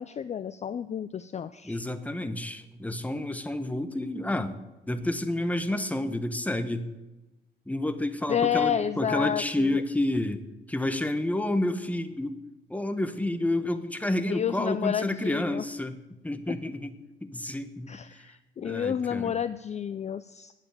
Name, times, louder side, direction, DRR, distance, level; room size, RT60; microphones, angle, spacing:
voice 1, 0.0-1.8 8.3-9.8 14.3-15.7 17.9-20.5, left 8 dB, 35° left, 14 dB, 0.4 m, -30 dB
voice 2, 1.6-4.6 4.9-6.9 7.7-10.4 10.7-12.4 12.7-16.0 16.2-17.0 17.2-17.9 18.6-19.3, left 1 dB, 5° left, 10 dB, 1.0 m, -29 dB
9.1 x 7.8 x 8.9 m, 1.1 s
cardioid pair, 90°, 20 cm